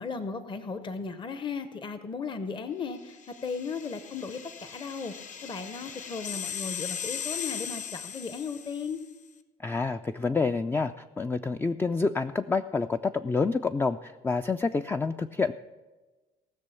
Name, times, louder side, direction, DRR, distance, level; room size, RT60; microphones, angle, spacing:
voice 1, 0.0-5.1 5.4-9.0, left 5 dB, 30° left, 10 dB, 0.7 m, -36 dB
sound 1, 3.1-9.1, left 8 dB, 50° left, 1.1 m, -38 dB
voice 2, 9.6-15.5, left 4 dB, 10° left, 9 dB, 0.3 m, -28 dB
18.0 x 6.3 x 6.9 m, 1.2 s
cardioid pair, 110°, 17 cm